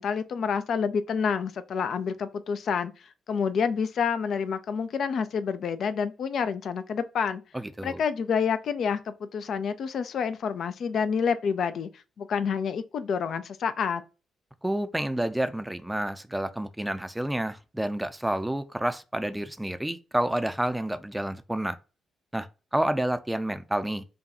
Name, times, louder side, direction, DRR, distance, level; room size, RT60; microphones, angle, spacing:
voice 1, 0.0-2.9 3.3-7.4 7.8-11.9 12.2-14.0, left 6 dB, 55° left, 0.4 m, -28 dB
voice 2, 7.5-8.0 14.6-21.8 22.3-24.0, right 1 dB, 10° right, 0.5 m, -29 dB
5.2 x 2.3 x 2.8 m
figure-of-eight pair, 40°, 0 cm